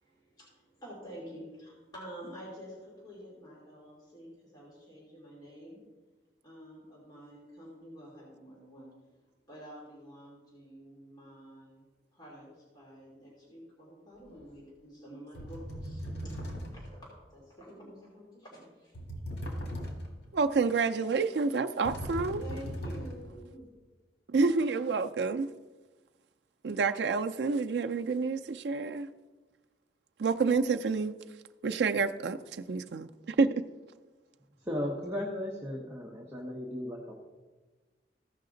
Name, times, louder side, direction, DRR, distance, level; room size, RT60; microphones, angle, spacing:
voice 1, 0.0-5.8 6.4-8.9 9.5-19.0 22.4-23.7, equal, 20° left, 2.7 m, -49 dB
sound 1, 14.3-14.5 15.3-17.0 18.9-20.3 21.8-23.4, equal, 85° left, 1.9 m, -39 dB
voice 2, 20.3-22.4 24.3-25.5 26.6-29.1 30.2-31.1 31.6-33.5, right 4 dB, 75° right, 0.4 m, -28 dB
voice 3, 34.6-37.1, left 1 dB, 15° right, 1.1 m, -36 dB
15.0 x 5.7 x 3.9 m
head